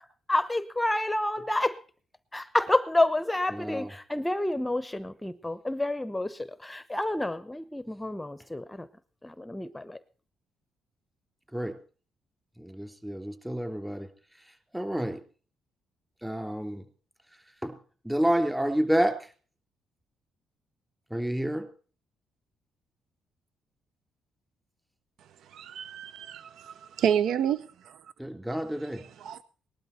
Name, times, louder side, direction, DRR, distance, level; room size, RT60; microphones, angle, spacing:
voice 1, 0.3-1.8 2.3-8.9 9.2-10.0, left 1 dB, 10° left, 0.9 m, -29 dB
voice 2, 3.5-3.9 11.5-11.7 12.6-14.1 14.7-15.2 16.2-16.8 17.6-17.7 18.0-19.1 21.1-21.6 28.2-29.0, equal, 5° right, 3.4 m, -29 dB
voice 3, 25.5-28.0 28.9-29.4, right 9 dB, 75° right, 0.7 m, -30 dB
19.5 x 12.0 x 4.3 m
cardioid pair, 90°, 0 cm